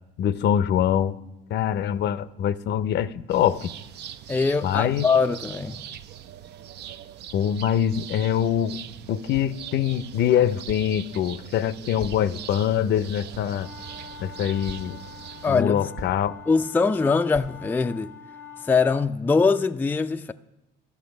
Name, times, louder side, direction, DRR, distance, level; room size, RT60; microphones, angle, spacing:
voice 1, 0.2-1.2 1.5-3.7 4.6-5.1 7.3-8.8 9.1-13.7 14.2-15.0 15.5-16.3, left 9 dB, 60° left, 0.6 m, -24 dB
sound 1, 3.3-15.6, right 10 dB, 55° right, 0.5 m, -42 dB
voice 2, 4.3-5.8 15.4-15.9 16.5-18.1 18.6-20.3, left 4 dB, 10° left, 0.3 m, -22 dB
sound 2, 9.3-9.6 10.7-11.0 12.0-12.7 13.3-14.0 14.7-14.9 15.6-15.7 16.0-16.2 17.3-17.6, right 3 dB, 80° right, 1.3 m, -41 dB
sound 3, 13.6-19.1, left 7 dB, 15° right, 0.9 m, -44 dB
13.0 x 6.5 x 5.2 m
supercardioid pair, 80°, 21 cm